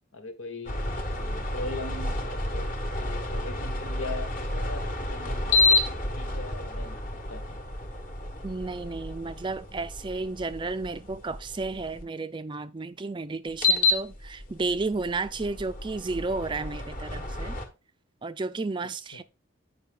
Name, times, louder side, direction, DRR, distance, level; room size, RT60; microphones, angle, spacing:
voice 1, 0.1-7.0 7.3-7.6 18.8-19.2, left 2 dB, 85° left, 1.6 m, -40 dB
sound 1, 0.7-12.0 13.5-17.7, left 2 dB, 40° left, 1.2 m, -30 dB
voice 2, 8.4-17.6 18.2-19.2, right 3 dB, 25° right, 0.4 m, -32 dB
8.4 x 5.5 x 3.7 m
head